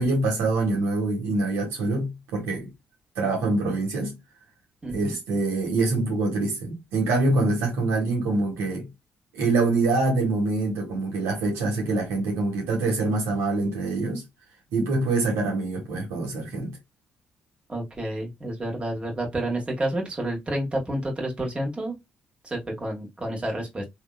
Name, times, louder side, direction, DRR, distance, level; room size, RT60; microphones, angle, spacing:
voice 1, 0.0-2.7 3.2-4.2 4.9-8.9 9.3-14.2 14.7-16.8, right 2 dB, 90° right, 1.6 m, -25 dB
voice 2, 4.8-5.1 17.7-22.0 22.4-23.8, right 1 dB, 25° right, 1.8 m, -29 dB
3.4 x 2.9 x 2.4 m
supercardioid pair, 70°, 4 cm